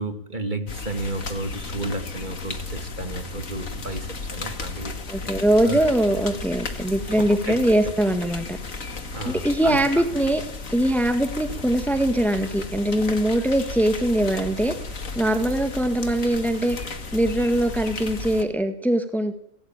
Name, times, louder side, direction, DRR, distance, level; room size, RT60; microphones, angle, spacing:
voice 1, 0.0-5.0 5.7-5.9 7.2-7.6 9.1-10.0, right 2 dB, 35° right, 8 dB, 2.1 m, -32 dB
sound 1, 0.7-18.4, left 3 dB, 85° left, 2.6 m, -34 dB
voice 2, 5.1-8.6 9.2-10.4 10.7-14.8 15.2-16.8 17.1-19.3, right 1 dB, ahead, 8 dB, 1.8 m, -22 dB
29.5 x 17.0 x 9.0 m, 0.78 s
omnidirectional pair, 1.4 m